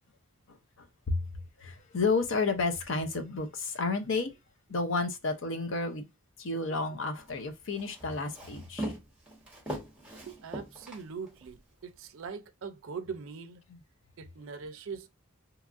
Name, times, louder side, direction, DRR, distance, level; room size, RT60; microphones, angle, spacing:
voice 1, 0.5-1.2 1.6-4.3 4.7-6.1 6.4-8.9 13.7-13.8, left 3 dB, 60° left, 0.5 m, -31 dB
Walk footsteps, 7.2-11.6, right 1 dB, 5° right, 0.9 m, -41 dB
voice 2, 10.2-13.6 14.2-15.1, right 5 dB, 65° right, 0.4 m, -42 dB
2.9 x 2.4 x 2.5 m
head